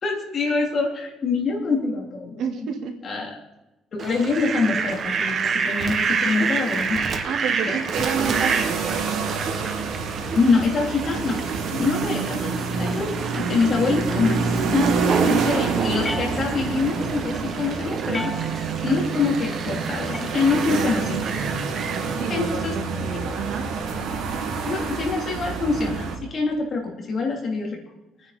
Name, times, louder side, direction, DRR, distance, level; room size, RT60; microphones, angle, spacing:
voice 1, 0.0-2.4 3.0-3.3 3.9-7.3 7.6-7.8 8.1-8.3 10.3-11.4 11.7-18.3 18.8-21.2 22.3-22.7 24.6-27.8, left 4 dB, 40° left, -1 dB, 3.2 m, -25 dB
voice 2, 2.4-2.9 6.9-9.2 14.7-15.3 18.0-18.4 20.7-21.2 21.8-23.7, right 6 dB, 70° right, 3 dB, 1.9 m, -31 dB
Fowl, 4.0-22.1, right 5 dB, 45° right, 1.3 m, -29 dB
sound 1, 7.9-26.2, right 5 dB, 85° right, 2.5 m, -27 dB
sound 2, 16.0-16.9 18.1-18.9 20.1-20.9, left 2 dB, 20° left, 0.7 m, -35 dB
25.0 x 9.8 x 4.3 m, 0.99 s
cardioid pair, 150°, 0 cm